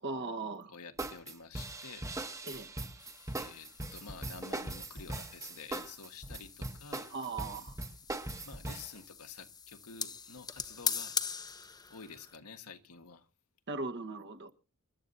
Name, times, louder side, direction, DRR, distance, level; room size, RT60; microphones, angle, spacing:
voice 1, 0.0-0.7 2.4-2.7 7.1-7.8 13.7-14.5, right 3 dB, 55° right, 1.5 m, -38 dB
voice 2, 0.7-2.1 3.4-7.1 8.4-11.2 11.9-13.2, left 5 dB, 85° left, 1.5 m, -49 dB
sound 1, 1.0-9.0, right 2 dB, 15° right, 1.2 m, -40 dB
sound 2, 3.0-12.4, left 6 dB, 20° left, 0.9 m, -42 dB
27.5 x 13.0 x 2.7 m
head